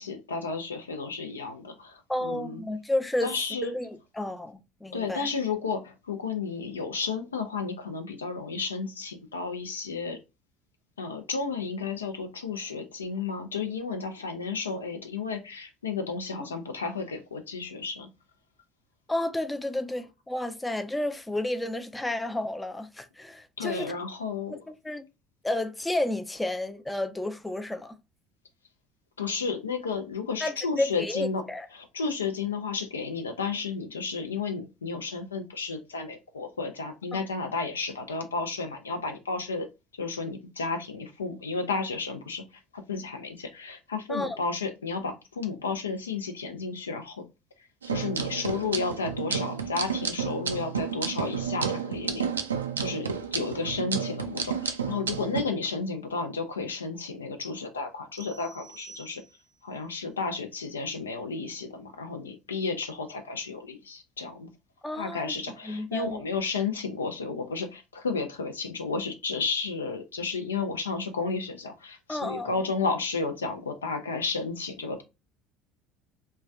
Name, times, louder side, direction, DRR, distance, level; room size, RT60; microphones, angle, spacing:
voice 1, 0.0-2.6 3.2-3.7 4.9-10.2 11.0-18.1 23.6-24.6 29.2-31.4 31.7-39.7 40.0-47.2 47.6-52.3 52.8-59.2 59.6-64.5 65.0-75.0, left 4 dB, 85° left, 0.4 m, -32 dB
voice 2, 2.1-3.3 3.6-5.3 19.1-23.9 24.5-25.0 25.4-27.9 30.4-31.7 37.1-37.2 44.1-44.4 64.8-65.3 65.6-66.2 72.1-72.6, left 1 dB, 10° left, 0.4 m, -31 dB
sound 1, 47.8-55.4, right 6 dB, 85° right, 0.3 m, -31 dB
sound 2, 58.2-59.7, right 5 dB, 40° right, 0.6 m, -50 dB
3.1 x 2.2 x 2.4 m
figure-of-eight pair, 65°, 0 cm